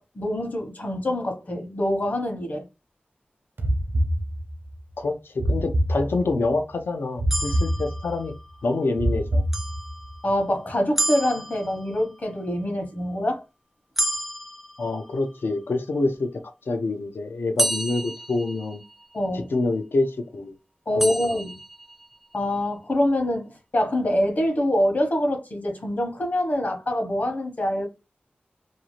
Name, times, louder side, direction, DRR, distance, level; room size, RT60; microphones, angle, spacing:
voice 1, 0.0-2.6 10.2-13.4 19.1-19.5 20.9-21.6 22.3-27.9, left 1 dB, 50° left, 0.9 m, -25 dB
sound 1, 3.6-4.8 5.4-6.6 7.2-8.3 9.0-10.1, equal, 70° right, 0.6 m, -25 dB
voice 2, 5.0-8.3 8.6-9.4 14.8-16.3 16.7-18.8 19.3-20.5 21.0-21.1, left 3 dB, 85° left, 0.5 m, -26 dB
sound 2, 7.3-8.7 9.5-10.5 11.0-12.2 14.0-15.5 17.6-19.2 21.0-22.2, right 1 dB, 5° right, 0.5 m, -31 dB
2.6 x 2.4 x 2.9 m
wide cardioid pair, 65°, 4 cm